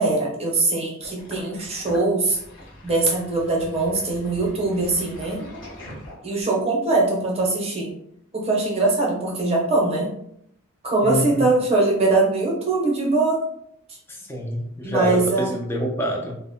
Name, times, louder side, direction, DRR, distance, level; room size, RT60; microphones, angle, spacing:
voice 1, 0.0-2.4 2.8-5.4 6.2-7.9 8.3-10.1 10.8-13.4 14.8-15.5, right 3 dB, 30° right, -2 dB, 0.7 m, -22 dB
Sink (filling or washing), 1.0-6.6, equal, 75° left, 1.0 m, -42 dB
voice 2, 11.0-11.5 14.1-16.3, equal, 10° left, 0 dB, 0.4 m, -26 dB
2.1 x 2.0 x 3.5 m, 0.73 s
head